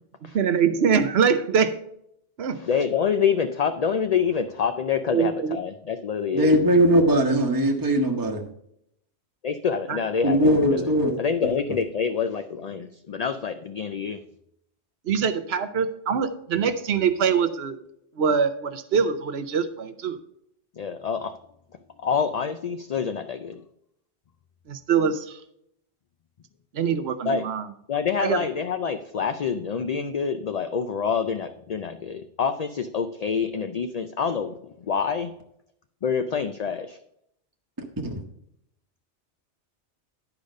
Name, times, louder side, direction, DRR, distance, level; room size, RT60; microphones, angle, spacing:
voice 1, 0.3-1.7 2.4-2.6 5.1-5.6 7.4-7.5 9.9-10.0 15.0-17.8 18.2-20.2 24.7-25.4 26.7-27.7 28.2-28.4, right 6 dB, 70° right, 11 dB, 1.0 m, -23 dB
voice 2, 2.5-6.6 9.4-14.2 20.8-21.4 22.0-23.6 27.2-27.4 27.9-35.3 36.0-37.0, left 6 dB, 50° left, 8 dB, 0.5 m, -27 dB
voice 3, 6.3-8.5 10.2-11.1 38.0-38.2, equal, 20° right, 1 dB, 1.1 m, -20 dB
10.5 x 5.0 x 5.2 m, 0.74 s
omnidirectional pair, 1.1 m